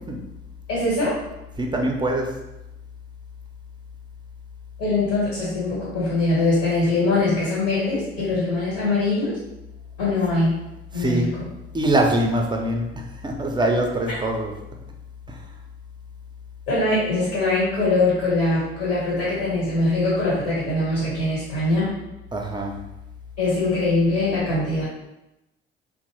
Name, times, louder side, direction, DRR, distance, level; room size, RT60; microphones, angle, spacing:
voice 1, 0.7-1.1 4.8-9.4 10.0-10.6 10.9-11.5 16.7-21.9 23.4-24.8, left 2 dB, 70° left, -8 dB, 1.1 m, -22 dB
voice 2, 1.6-2.4 10.9-11.3 11.7-12.9 13.2-14.5 22.3-22.8, right 1 dB, 15° right, 1 dB, 0.5 m, -23 dB
2.9 x 2.1 x 2.9 m, 0.93 s
figure-of-eight pair, 50°, 29 cm